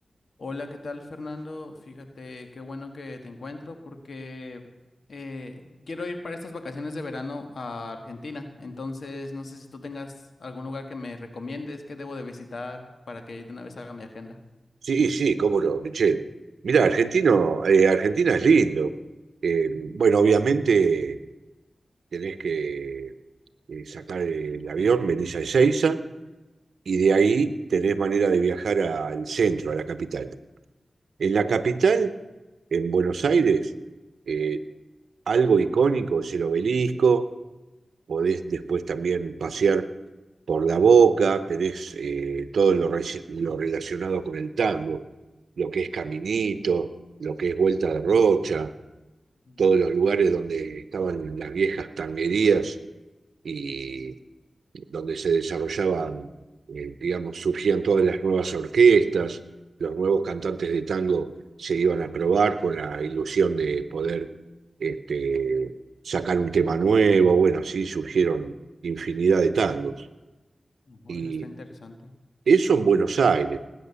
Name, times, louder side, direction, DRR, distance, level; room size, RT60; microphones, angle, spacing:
voice 1, 0.4-4.6 5.1-14.4 19.7-19.9 49.5-49.6 70.9-72.1, left 3 dB, 75° left, 6 dB, 1.6 m, -37 dB
voice 2, 14.8-16.2 16.6-18.9 19.4-21.2 22.1-23.1 23.7-26.0 26.9-30.3 31.2-32.1 32.7-33.7 34.3-34.6 35.3-37.3 38.1-39.9 40.5-45.0 45.6-46.9 47.2-48.7 49.6-52.8 53.4-54.1 54.7-56.3 56.7-59.4 59.8-61.3 61.6-64.3 64.8-65.7 66.0-68.5 68.8-69.9 71.1-71.5 72.5-73.6, right 5 dB, 85° right, 12 dB, 0.7 m, -23 dB
18.5 x 9.1 x 7.0 m, 1.1 s
cardioid pair, 40°, 0 cm